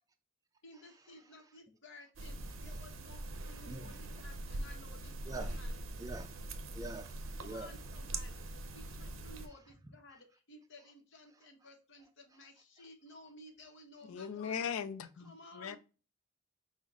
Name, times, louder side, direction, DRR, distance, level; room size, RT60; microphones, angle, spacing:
voice 1, 0.6-5.8 7.4-8.5 8.7-14.6 15.1-15.8, left 1 dB, 60° left, 0.8 m, -56 dB
sound 1, 2.2-9.5, right 2 dB, 70° right, 0.6 m, -43 dB
voice 2, 3.7-4.0 5.2-5.6 6.0-6.4 6.7-7.7, right 2 dB, 15° right, 0.4 m, -44 dB
voice 3, 14.1-15.8, left 7 dB, 85° left, 0.4 m, -39 dB
5.0 x 2.1 x 3.6 m
head